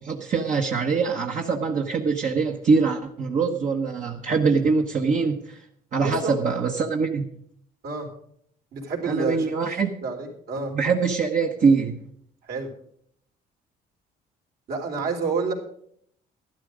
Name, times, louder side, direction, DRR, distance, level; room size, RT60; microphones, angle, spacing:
voice 1, 0.0-5.6 5.9-7.3 9.0-9.9 10.7-12.0, right 4 dB, 50° right, 2 dB, 1.2 m, -23 dB
voice 2, 6.0-6.4 7.8-8.1 8.7-10.7 12.4-12.7 14.7-15.5, right 4 dB, 65° right, 1 dB, 3.7 m, -29 dB
12.5 x 12.0 x 5.0 m, 0.65 s
cardioid pair, 110°, 17 cm